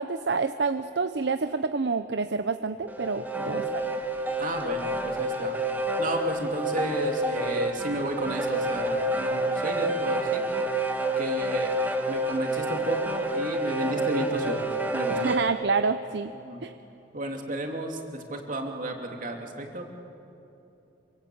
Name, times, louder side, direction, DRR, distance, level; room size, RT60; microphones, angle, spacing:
voice 1, 0.0-3.9 15.1-16.3 16.6-16.7, right 4 dB, 65° right, 10 dB, 0.7 m, -28 dB
sound 1, 2.9-15.5, right 1 dB, 10° right, 2.0 m, -28 dB
voice 2, 4.4-5.6 6.0-10.4 11.2-11.7 12.1-14.7 14.9-15.3 16.4-16.6 17.1-19.9, right 1 dB, 50° right, 3 dB, 2.9 m, -33 dB
26.5 x 24.0 x 8.7 m, 2.8 s
head